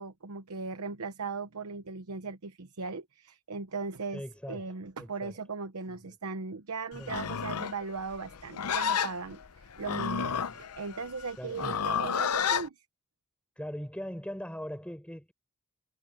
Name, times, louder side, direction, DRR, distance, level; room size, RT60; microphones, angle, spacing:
voice 1, 0.0-4.2 4.5-12.8, right 4 dB, 85° right, 0.9 m, -38 dB
voice 2, 4.1-4.7 5.0-5.3 5.9-6.1 6.9-7.2 10.5-10.6 11.4-11.8 13.6-15.3, equal, 5° left, 5.4 m, -40 dB
Livestock farm animals working animals, 7.0-12.7, left 7 dB, 80° left, 0.7 m, -31 dB
head